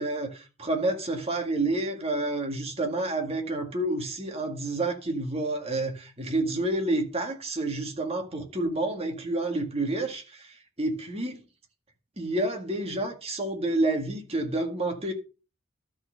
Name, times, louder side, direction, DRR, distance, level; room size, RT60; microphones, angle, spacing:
voice 1, 0.0-11.4 12.2-15.1, right 2 dB, 30° right, 1.9 m, -29 dB
12.5 x 4.4 x 6.3 m
head